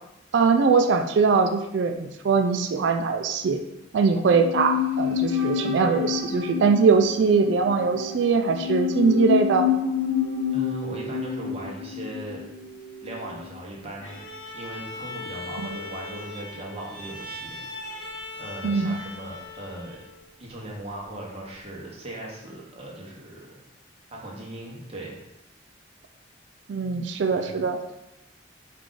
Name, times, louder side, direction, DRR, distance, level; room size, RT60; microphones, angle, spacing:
voice 1, 0.3-3.6 3.9-9.7 18.6-19.0 26.7-27.8, right 5 dB, 65° right, 6 dB, 0.3 m, -21 dB
sound 1, 4.3-13.6 13.9-14.0, left 8 dB, 75° left, 0.6 m, -28 dB
voice 2, 10.5-12.4 13.0-14.2 14.5-18.0 18.4-20.0 20.4-23.6 24.1-25.2 27.3-27.6, right 1 dB, 30° right, -3 dB, 0.9 m, -38 dB
Bowed string instrument, 14.0-20.3, left 2 dB, 90° left, 1.2 m, -39 dB
4.7 x 2.5 x 3.7 m, 0.89 s
head